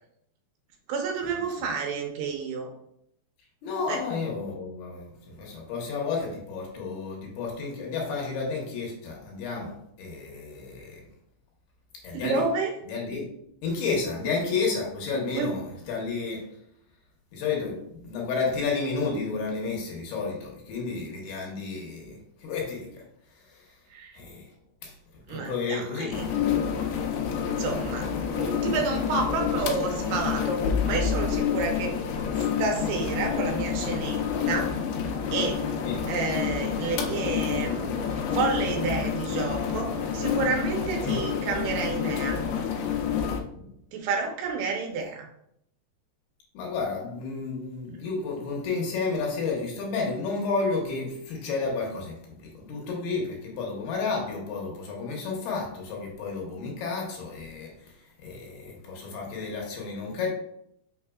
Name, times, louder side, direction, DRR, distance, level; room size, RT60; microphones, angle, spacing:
voice 1, 0.9-2.7 3.9-4.0 12.1-12.7 15.4-15.5 23.9-24.2 25.3-26.3 27.6-32.0 32.3-34.7 35.3-35.7 36.1-42.5 43.9-45.3, right 4 dB, 75° right, 2 dB, 2.7 m, -30 dB
voice 2, 3.6-11.0 12.0-12.4 12.9-13.3 13.6-16.5 17.3-23.0 23.5-23.6 24.1-24.5 24.8-24.9 25.3-26.3 35.8-36.1 41.0-41.2 43.5-43.7 46.5-57.9 58.2-60.3, left 4 dB, 70° left, -1 dB, 3.0 m, -31 dB
sound 1, 26.1-43.4, left 7 dB, 85° left, 3.0 m, -28 dB
6.4 x 6.3 x 2.3 m, 0.74 s
omnidirectional pair, 4.9 m